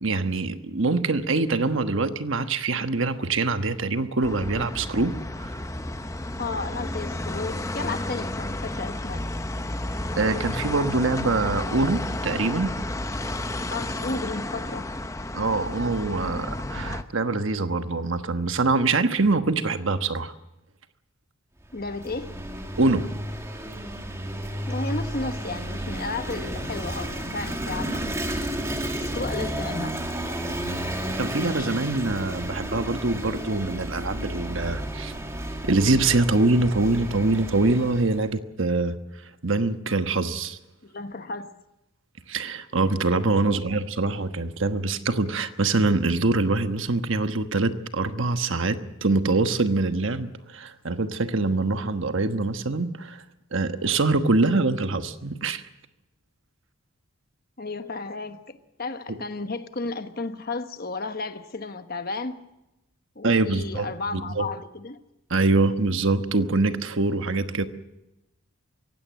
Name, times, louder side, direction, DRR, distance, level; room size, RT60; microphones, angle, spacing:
voice 1, 0.0-5.6 10.2-12.7 15.3-20.3 22.8-23.1 31.2-35.1 35.6-39.0 39.2-40.6 42.3-53.2 53.5-55.6 59.1-59.2 63.2-63.9 64.1-64.5 65.3-67.6, right 3 dB, 60° right, 1.2 m, -24 dB
sound 1, 4.2-17.0, left 1 dB, 15° left, 0.8 m, -32 dB
voice 2, 6.4-9.2 13.7-14.9 21.7-22.3 24.7-28.1 29.0-30.0 31.5-31.8 40.8-41.5 43.4-43.8 57.6-62.4 63.1-65.0, left 3 dB, 45° left, 1.2 m, -33 dB
Vehicle / Engine, 21.6-38.3, right 1 dB, 15° right, 2.0 m, -32 dB
24.0 x 16.5 x 7.5 m
head